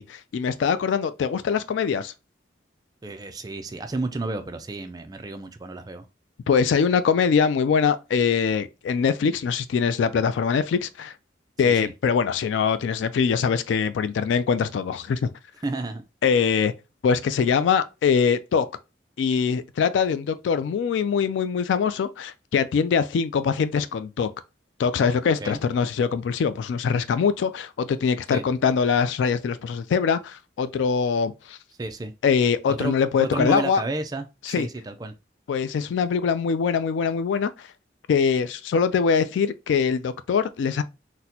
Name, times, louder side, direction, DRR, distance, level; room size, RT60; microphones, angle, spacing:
voice 1, 0.0-2.1 6.5-11.1 11.6-15.3 16.2-16.7 17.0-18.7 19.2-24.3 24.8-31.6 32.2-33.8 34.5-34.7 35.5-37.7 38.1-40.8, left 6 dB, 75° left, 0.3 m, -23 dB
voice 2, 3.0-6.0 11.6-11.9 15.6-16.0 25.4-25.6 28.3-28.4 31.8-32.1 32.7-32.9 33.2-35.1, right 2 dB, 20° right, 0.4 m, -31 dB
4.0 x 2.1 x 2.7 m
head